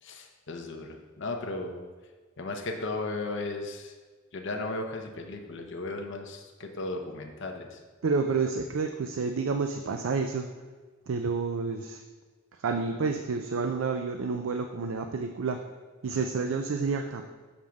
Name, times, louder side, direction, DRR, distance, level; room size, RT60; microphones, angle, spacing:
voice 1, 0.0-1.8 2.4-3.9 4.3-7.8, left 2 dB, 60° left, 3 dB, 0.7 m, -35 dB
voice 2, 8.0-10.5 11.1-12.0 12.5-15.6 16.0-17.2, right 4 dB, 75° right, 6 dB, 0.4 m, -29 dB
7.3 x 3.5 x 6.2 m, 1.4 s
head